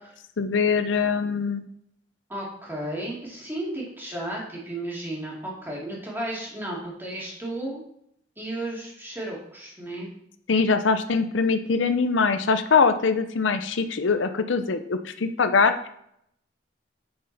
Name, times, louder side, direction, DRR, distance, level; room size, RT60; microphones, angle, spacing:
voice 1, 0.4-1.6 10.5-15.9, left 5 dB, 85° left, 9 dB, 0.6 m, -22 dB
voice 2, 2.3-7.8 8.4-10.1, right 1 dB, 10° right, -4 dB, 2.2 m, -33 dB
8.0 x 6.5 x 4.1 m, 0.73 s
head